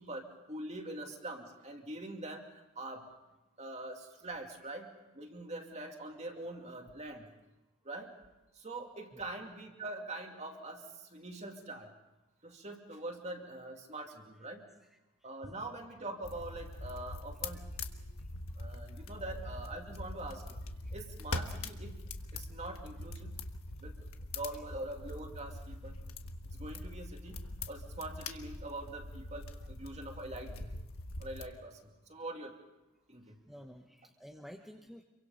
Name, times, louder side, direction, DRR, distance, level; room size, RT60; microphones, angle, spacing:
voice 1, 0.0-2.5 2.8-3.1 3.6-4.9 5.1-7.3 7.8-8.1 8.5-11.9 12.4-14.6 15.2-18.0 18.6-20.6 20.9-21.9 22.3-23.3 23.8-24.1 24.3-25.9 26.5-30.7 31.2-32.6 33.1-33.4, right 2 dB, 30° right, 3 dB, 2.5 m, -44 dB
sound 1, 16.2-31.5, left 2 dB, 65° left, 1.5 m, -43 dB
voice 2, 33.5-35.0, equal, ahead, 2 dB, 1.0 m, -51 dB
27.5 x 23.5 x 5.5 m, 1.0 s
head